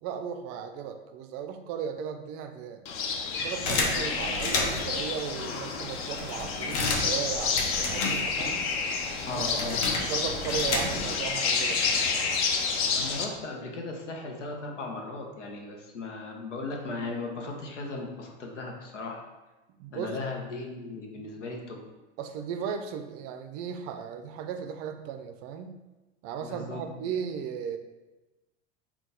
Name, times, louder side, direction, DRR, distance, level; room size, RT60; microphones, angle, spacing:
voice 1, 0.0-2.8 3.3-8.7 9.2-9.8 10.1-12.0 19.8-20.2 21.1-21.3 22.2-25.8 26.2-27.8, right 7 dB, 45° right, 7 dB, 0.4 m, -36 dB
sound 1, 2.9-13.3, left 5 dB, 40° left, 0.5 m, -30 dB
sound 2, 3.7-5.0 5.6-5.7 5.9-8.6 8.9-11.3, left 3 dB, 55° left, 0.9 m, -31 dB
voice 2, 9.3-9.8 12.9-19.2 19.9-21.8 26.4-26.8, left 3 dB, 90° left, 1 dB, 0.8 m, -37 dB
3.7 x 2.4 x 3.7 m, 1.1 s
hypercardioid pair, 95°, 36 cm